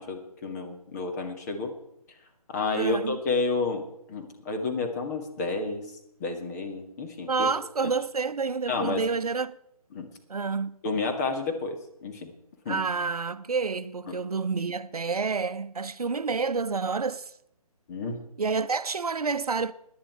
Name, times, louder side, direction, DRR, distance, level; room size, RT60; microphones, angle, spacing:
voice 1, 0.0-1.7 2.5-5.9 6.2-7.5 7.8-7.9 8.7-9.0 9.9-10.1 10.8-12.3 12.7-12.8 14.1-14.2 17.9-18.3, left 3 dB, 25° left, 1.9 m, -30 dB
voice 2, 2.7-3.2 7.3-9.6 10.3-10.7 12.7-17.3 18.4-19.7, right 4 dB, 75° right, 0.7 m, -29 dB
16.5 x 10.5 x 4.7 m
figure-of-eight pair, 150°, 19 cm